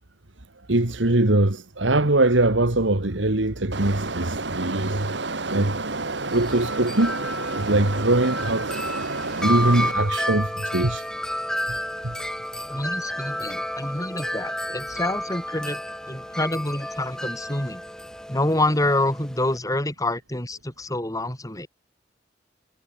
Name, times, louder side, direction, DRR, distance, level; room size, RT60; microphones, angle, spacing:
voice 1, 0.7-5.1 5.5-5.8 6.3-7.2 7.5-8.7 9.3-11.0 12.0-12.1, right 2 dB, 85° right, 2.0 m, -22 dB
sound 1, 3.7-9.9, right 3 dB, 65° right, 2.3 m, -30 dB
Wind chime, 6.2-19.6, left 1 dB, 5° left, 5.2 m, -31 dB
voice 2, 12.7-15.8 16.1-17.8 18.3-21.7, left 1 dB, 20° left, 4.6 m, -27 dB
head